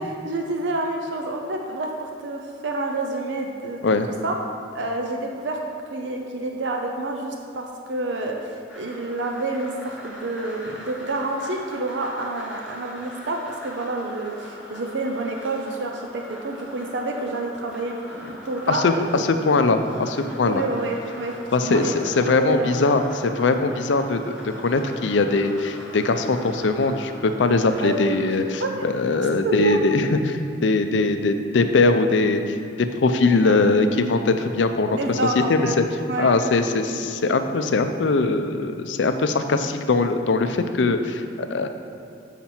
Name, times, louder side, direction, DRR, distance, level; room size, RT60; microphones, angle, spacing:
voice 1, 0.0-3.8 4.2-4.3 4.7-5.6 5.9-19.0 19.3-19.4 20.4-21.9 22.3-22.7 27.8-28.9 29.4-29.8 33.4-33.8 34.9-35.7 36.1-36.3 36.9-37.0, right 2 dB, 75° right, 2 dB, 0.6 m, -28 dB
sound 1, 8.7-28.3, equal, 5° right, 1.2 m, -42 dB
voice 2, 18.7-20.6 21.5-35.8 36.2-41.7, left 3 dB, 75° left, 8 dB, 0.5 m, -21 dB
7.1 x 5.8 x 4.4 m, 2.7 s
head